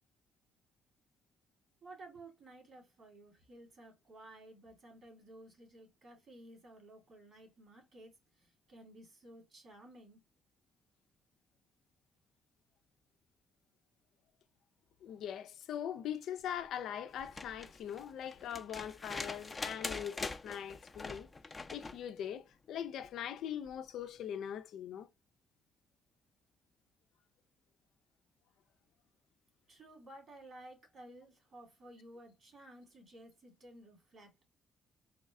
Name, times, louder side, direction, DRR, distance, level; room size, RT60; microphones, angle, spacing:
voice 1, 1.8-8.1 8.4-10.2 29.7-34.3, right 1 dB, 50° right, 2.4 m, -55 dB
voice 2, 15.0-21.3 21.7-25.1, left 9 dB, 75° left, 0.4 m, -41 dB
sound 1, 17.2-22.0 23.7-23.8, left 3 dB, 25° left, 0.6 m, -43 dB
4.1 x 2.1 x 3.6 m
cardioid pair, 90°, 0 cm